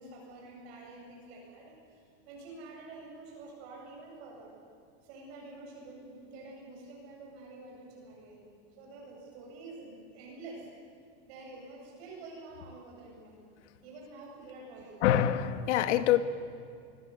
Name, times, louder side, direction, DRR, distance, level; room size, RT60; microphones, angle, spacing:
voice 1, 0.0-4.5 5.0-10.7 11.3-13.5 13.8-15.1, right 2 dB, 65° right, -2 dB, 8.0 m, -48 dB
voice 2, 15.0-16.2, left 11 dB, 90° left, 10 dB, 1.6 m, -25 dB
27.0 x 21.0 x 8.3 m, 2.3 s
supercardioid pair, 150°, 34 cm